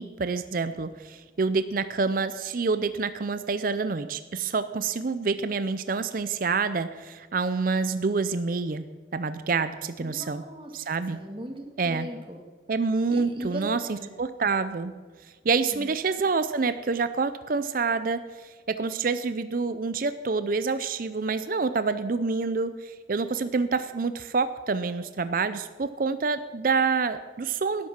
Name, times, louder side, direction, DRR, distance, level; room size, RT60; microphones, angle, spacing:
voice 1, 0.0-8.8 9.1-10.4 10.7-11.2 11.8-12.1 12.7-14.9 15.2-27.9, right 4 dB, 45° right, 11 dB, 0.5 m, -27 dB
voice 2, 10.0-10.7 11.1-12.4 13.1-13.7 14.0-14.1 15.7-15.9, right 1 dB, 25° right, 3 dB, 1.7 m, -38 dB
12.0 x 10.0 x 5.9 m, 1.4 s
head